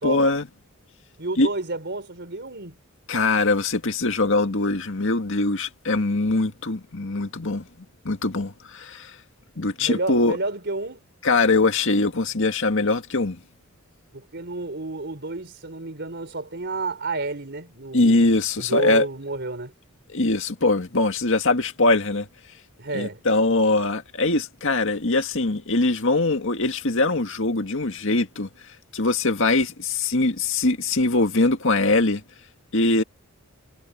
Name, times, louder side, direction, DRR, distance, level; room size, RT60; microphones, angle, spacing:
voice 1, 0.0-0.5 1.4-1.5 3.1-7.7 8.1-9.2 9.6-10.4 11.2-13.4 17.9-19.1 20.1-22.3 22.9-28.5 28.9-32.2 32.7-33.0, left 2 dB, 60° left, 2.0 m, -22 dB
voice 2, 1.2-2.8 9.8-11.0 14.1-18.3 18.6-19.7 22.8-23.2, right 2 dB, 50° right, 4.2 m, -30 dB
head